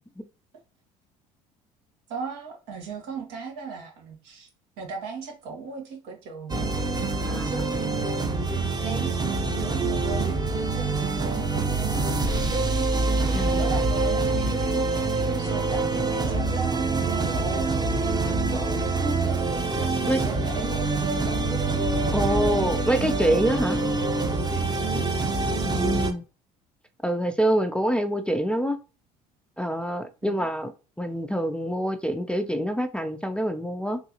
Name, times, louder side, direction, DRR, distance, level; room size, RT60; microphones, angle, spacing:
voice 1, 2.1-4.5 4.8-6.7 7.4-7.9 8.8-10.4 10.8-12.0 13.5-15.1 15.4-17.6 18.2-19.0 19.8-21.5 24.7-25.0 30.2-30.4, right 5 dB, 75° right, 1.3 m, -37 dB
sound 1, 6.5-26.1, right 3 dB, 20° right, 0.8 m, -25 dB
voice 2, 7.2-7.7 13.3-13.7 20.1-20.2 22.1-23.8 25.6-26.2 27.0-28.8 29.6-30.7 31.0-34.0, right 1 dB, 5° left, 0.4 m, -26 dB
3.7 x 2.6 x 2.8 m
hypercardioid pair, 70°, 19 cm